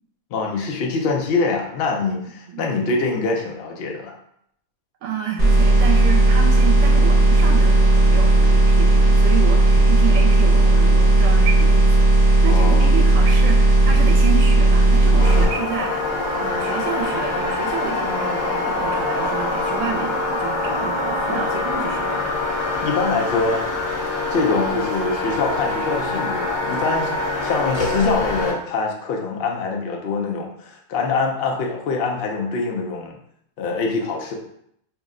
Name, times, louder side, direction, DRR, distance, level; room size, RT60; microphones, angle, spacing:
voice 1, 0.3-4.1 12.5-12.9 22.8-23.6 24.3-33.1 33.6-34.3, left 4 dB, 60° left, 1 dB, 0.7 m, -24 dB
voice 2, 5.0-16.1 16.4-22.4, right 7 dB, 75° right, 2 dB, 0.9 m, -30 dB
sound 1, 5.4-15.4, right 2 dB, 45° right, 1.0 m, -14 dB
sound 2, 15.2-28.5, left 2 dB, 30° left, 1.0 m, -24 dB
2.7 x 2.1 x 3.6 m, 0.71 s
omnidirectional pair, 1.4 m